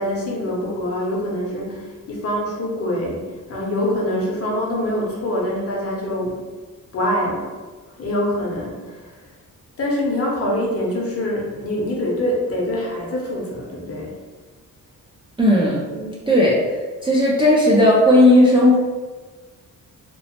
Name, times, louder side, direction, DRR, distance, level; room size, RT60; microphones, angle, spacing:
voice 1, 0.0-6.4 6.9-7.5 8.0-9.3 9.8-14.1 15.9-16.2, left 1 dB, 45° left, -3 dB, 0.7 m, -25 dB
voice 2, 15.4-15.8 16.3-16.6 17.0-18.8, left 1 dB, 15° right, -6 dB, 0.3 m, -14 dB
2.9 x 2.0 x 2.8 m, 1.3 s
wide cardioid pair, 150°, 33 cm